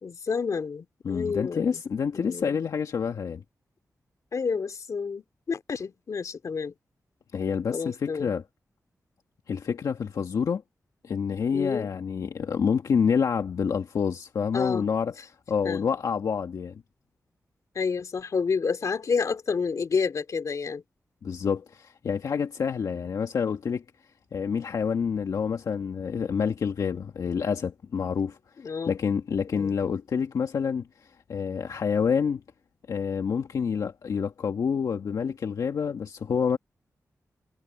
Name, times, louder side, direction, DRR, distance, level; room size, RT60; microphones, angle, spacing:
voice 1, 0.0-1.8 2.1-2.6 4.3-6.7 7.7-8.3 11.5-11.9 14.5-14.9 15.6-15.9 17.7-20.8 28.6-29.0 29.5-29.7, left 5 dB, 65° left, 2.5 m, -29 dB
voice 2, 1.0-3.4 7.3-8.4 9.5-10.6 11.0-15.1 15.5-16.8 21.2-23.8 24.3-28.4 28.8-30.9 31.3-32.4 32.9-36.6, left 6 dB, 80° left, 1.8 m, -27 dB
cardioid pair, 70°, 6 cm